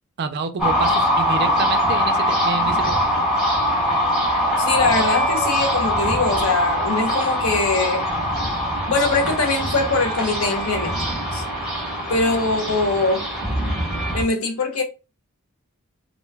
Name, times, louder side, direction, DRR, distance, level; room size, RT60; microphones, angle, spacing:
voice 1, 0.2-3.0 11.8-11.9, right 4 dB, 50° right, 0.4 m, -28 dB
sound 1, 0.6-14.2, equal, 5° right, 0.8 m, -22 dB
voice 2, 4.6-8.1 8.9-11.4 12.1-13.2 14.1-14.8, left 3 dB, 65° left, 0.7 m, -22 dB
2.3 x 2.2 x 3.3 m
head